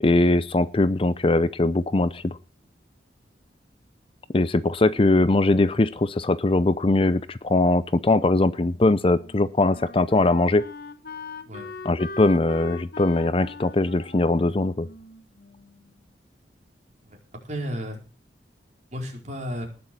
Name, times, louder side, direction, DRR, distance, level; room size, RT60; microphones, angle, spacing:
voice 1, 0.0-2.4 4.3-10.6 11.8-14.9, left 2 dB, 30° left, 15 dB, 0.5 m, -21 dB
Wind instrument woodwind instrument, 8.6-15.9, left 3 dB, 55° left, 1.3 m, -41 dB
voice 2, 17.0-18.0 18.9-19.6, equal, 40° right, 1 dB, 4.6 m, -33 dB
19.0 x 7.0 x 6.1 m, 0.36 s
head